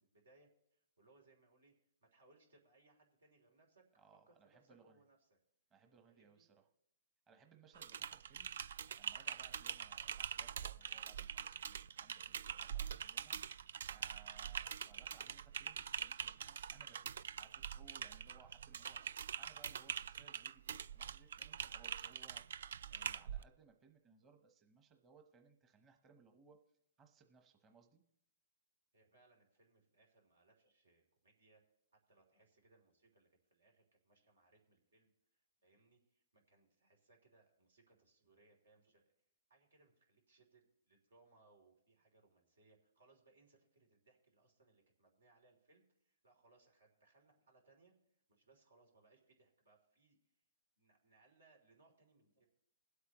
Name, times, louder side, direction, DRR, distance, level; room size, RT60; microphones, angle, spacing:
voice 1, 0.0-3.8 4.3-5.4 6.1-6.5 28.9-31.6 32.1-39.0 39.5-50.4 50.8-52.5, right 3 dB, 90° right, 2 dB, 3.1 m, -71 dB
voice 2, 4.0-5.0 5.7-6.7 7.3-13.4 13.9-19.0 19.4-22.6 22.9-26.6 27.0-28.0, right 5 dB, 20° right, 4 dB, 1.0 m, -66 dB
Typing, 7.7-23.4, right 8 dB, 70° right, 0.3 m, -44 dB
21.0 x 8.2 x 3.1 m, 0.77 s
hypercardioid pair, 140°, 0 cm